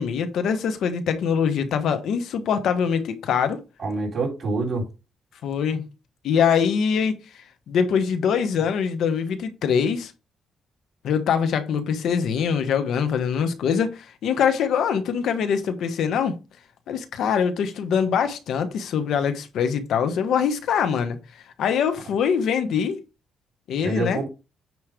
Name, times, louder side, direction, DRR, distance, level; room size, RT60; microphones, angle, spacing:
voice 1, 0.0-3.6 5.4-5.8 6.2-7.2 7.7-10.1 11.0-16.4 16.9-21.2 21.6-23.0 23.7-24.2, left 7 dB, 75° left, 1.1 m, -23 dB
voice 2, 3.8-4.8 23.8-24.3, right 3 dB, 40° right, 3.9 m, -26 dB
9.4 x 3.2 x 5.1 m
cardioid pair, 115°, 0 cm